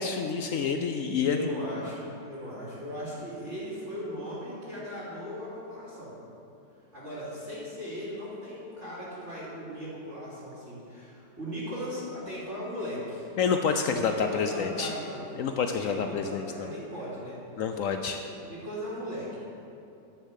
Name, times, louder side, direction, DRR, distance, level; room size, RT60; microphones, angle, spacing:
voice 1, 0.0-1.5 13.4-14.9 15.4-16.7 17.6-18.2, left 6 dB, 75° left, 6 dB, 0.7 m, -28 dB
voice 2, 1.3-6.1 6.9-13.3 13.9-15.3 15.7-17.4 18.2-19.4, equal, 40° right, -9 dB, 3.1 m, -38 dB
10.0 x 7.0 x 7.3 m, 2.7 s
omnidirectional pair, 1.9 m